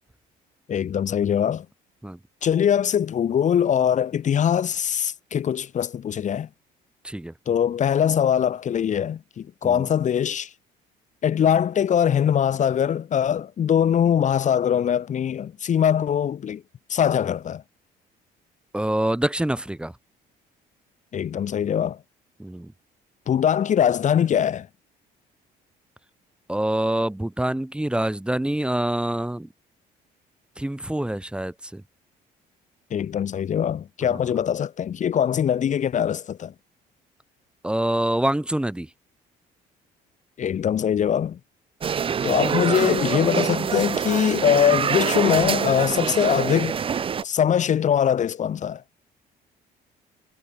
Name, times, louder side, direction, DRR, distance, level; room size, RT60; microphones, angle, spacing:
voice 1, 0.7-1.6 2.4-6.5 7.4-10.5 11.2-16.6 16.9-17.6 21.1-22.0 23.3-24.7 32.9-36.5 40.4-41.4 42.2-46.8 47.2-48.8, left 9 dB, 45° left, 1.8 m, -22 dB
voice 2, 18.7-19.9 22.4-22.7 26.5-29.5 30.6-31.8 34.1-34.2 37.6-38.9 42.1-42.2, right 1 dB, 5° right, 2.5 m, -26 dB
sound 1, 41.8-47.2, right 7 dB, 30° right, 0.7 m, -25 dB
cardioid pair, 110°, 17 cm